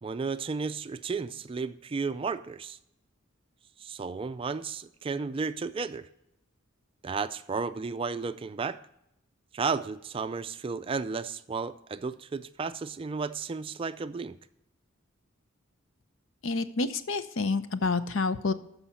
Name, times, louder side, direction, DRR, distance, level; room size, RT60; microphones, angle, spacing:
voice 1, 0.0-2.8 3.8-6.1 7.0-8.8 9.5-14.3, right 4 dB, 25° right, 12 dB, 0.3 m, -33 dB
voice 2, 16.4-18.5, left 3 dB, 70° left, 12 dB, 0.7 m, -28 dB
13.0 x 5.7 x 4.1 m, 0.81 s
head